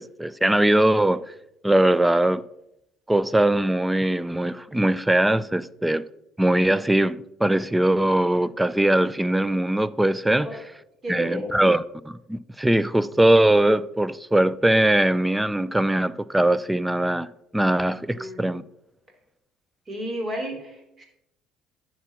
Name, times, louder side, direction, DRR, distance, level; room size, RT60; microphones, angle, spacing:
voice 1, 0.0-1.3 1.6-2.4 3.1-6.0 6.4-10.5 11.1-18.6, right 1 dB, 10° right, 0.5 m, -21 dB
voice 2, 11.0-11.6 18.1-18.4 19.9-21.0, equal, 35° right, 3.5 m, -32 dB
10.0 x 4.8 x 5.8 m
hypercardioid pair, 65°, 0 cm